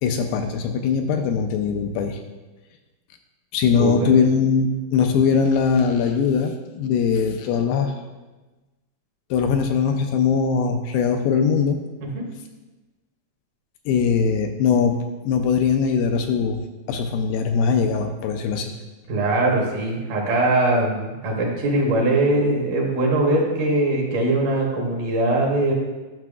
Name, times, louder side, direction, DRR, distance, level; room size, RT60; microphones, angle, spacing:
voice 1, 0.0-2.2 3.5-7.9 9.3-11.8 13.9-18.8, left 6 dB, 80° left, 6 dB, 2.2 m, -21 dB
voice 2, 3.8-4.1 12.0-12.2 19.1-25.7, right 2 dB, 70° right, -1 dB, 2.4 m, -21 dB
12.0 x 5.7 x 2.4 m, 1.2 s
omnidirectional pair, 4.3 m